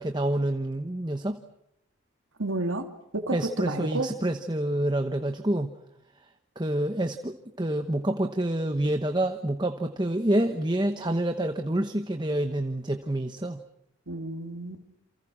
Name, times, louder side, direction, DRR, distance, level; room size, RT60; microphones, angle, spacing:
voice 1, 0.0-1.4 3.3-5.7 6.6-13.6, right 1 dB, 20° right, 7 dB, 1.0 m, -27 dB
voice 2, 2.4-2.9 3.1-4.1 14.1-14.8, right 2 dB, 80° right, 5 dB, 2.7 m, -31 dB
28.5 x 28.0 x 6.3 m, 0.81 s
head